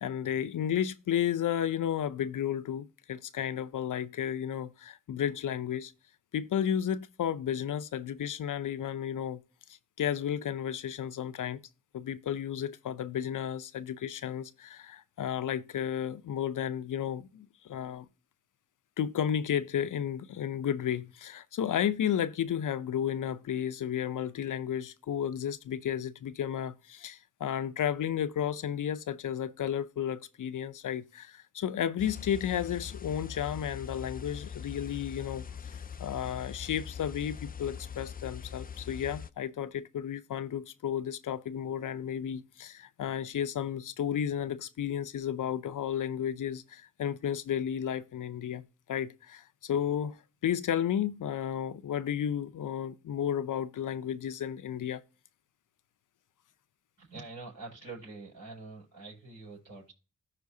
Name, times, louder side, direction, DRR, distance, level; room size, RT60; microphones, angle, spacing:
voice 1, 0.0-5.9 6.3-9.4 9.7-11.6 11.9-18.1 19.0-48.6 48.9-50.2 50.4-55.0, left 9 dB, 65° left, 0.6 m, -33 dB
sound 1, 32.0-39.3, left 7 dB, 25° left, 0.4 m, -42 dB
voice 2, 57.0-59.9, right 3 dB, 55° right, 5.2 m, -45 dB
14.0 x 5.0 x 2.7 m
cardioid pair, 50°, 34 cm